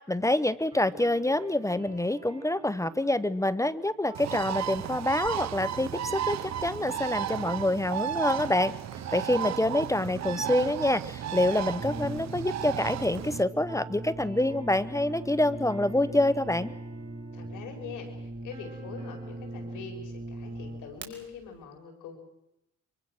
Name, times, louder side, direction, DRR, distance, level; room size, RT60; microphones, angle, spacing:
voice 1, 0.1-8.7 9.1-16.7, left 1 dB, 10° left, 17 dB, 0.9 m, -26 dB
sound 1, 0.7-19.8, right 3 dB, 15° right, 5.5 m, -50 dB
Bird, 4.1-13.4, right 10 dB, 65° right, 1.0 m, -34 dB
Brass instrument, 11.8-21.1, right 1 dB, 40° right, 4.9 m, -40 dB
voice 2, 17.3-22.2, left 6 dB, 85° left, 3 dB, 5.5 m, -44 dB
24.5 x 23.5 x 6.2 m, 0.85 s
cardioid pair, 90°, 30 cm